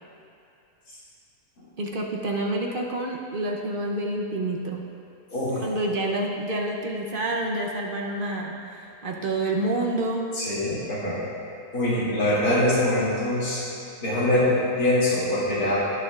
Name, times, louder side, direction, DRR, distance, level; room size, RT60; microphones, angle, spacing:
voice 1, 1.8-4.8 5.6-10.3, right 1 dB, 45° right, 0 dB, 0.7 m, -28 dB
voice 2, 5.3-5.6 10.3-11.2 11.7-13.6 14.0-15.8, left 1 dB, 65° left, -9 dB, 3.1 m, -23 dB
17.5 x 6.8 x 2.4 m, 2.6 s
omnidirectional pair, 1.7 m